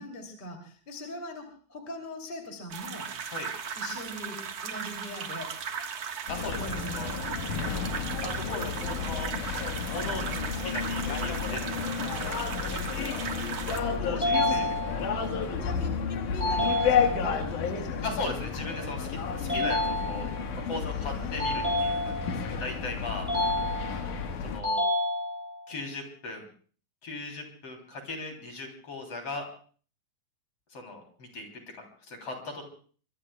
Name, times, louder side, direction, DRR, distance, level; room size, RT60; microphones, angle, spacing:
voice 1, 0.0-3.1 3.8-5.5 6.6-7.8 14.1-14.8 15.2-18.4 20.9-21.9, left 1 dB, 15° left, 3 dB, 2.6 m, -41 dB
sound 1, 2.7-13.8, right 7 dB, 55° right, 2.3 m, -37 dB
sound 2, 6.3-24.6, left 6 dB, 75° left, 3.0 m, -32 dB
voice 2, 6.3-6.6 6.9-7.1 8.2-9.3 9.9-13.4 14.0-15.0 18.0-20.3 20.5-23.3 24.4-24.8 25.7-26.5 27.0-29.5 30.7-31.5 31.7-32.6, left 2 dB, 45° left, 2 dB, 4.1 m, -38 dB
sound 3, 14.2-15.2 16.4-17.4 19.5-20.5 21.4-22.5 23.3-24.2 24.6-25.6, left 1 dB, 10° right, 8.0 m, -29 dB
24.0 x 23.5 x 2.3 m, 0.42 s
omnidirectional pair, 3.7 m